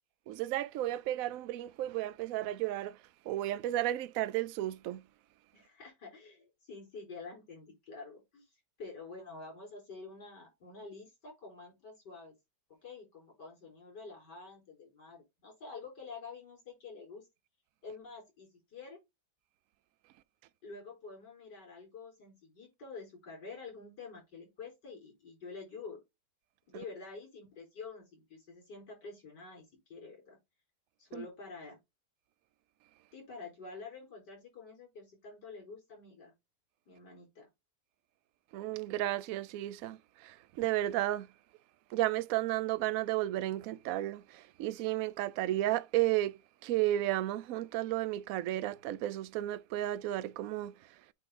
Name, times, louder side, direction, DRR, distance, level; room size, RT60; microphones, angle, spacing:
voice 1, 0.3-3.0 3.3-5.0 26.7-26.8 31.1-31.3 38.5-41.3 41.9-50.7, right 14 dB, 65° right, 0.9 m, -33 dB
voice 2, 5.5-8.4 8.8-12.3 12.8-17.3 17.8-19.0 20.6-26.0 26.7-30.4 31.0-31.8 33.1-36.3 36.9-37.5, left 4 dB, 75° left, 5.0 m, -48 dB
8.4 x 3.9 x 3.8 m
omnidirectional pair, 1.8 m